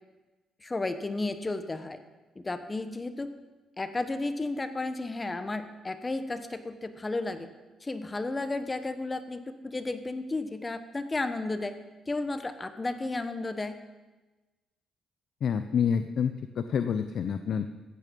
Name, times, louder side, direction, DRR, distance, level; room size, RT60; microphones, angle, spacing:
voice 1, 0.6-2.0 2.3-3.3 3.8-7.5 7.8-11.8 12.1-13.8, left 2 dB, 20° left, 10 dB, 1.1 m, -33 dB
voice 2, 15.4-17.7, left 7 dB, 60° left, 9 dB, 0.6 m, -28 dB
14.5 x 9.1 x 5.4 m, 1.2 s
cardioid pair, 90°, 0 cm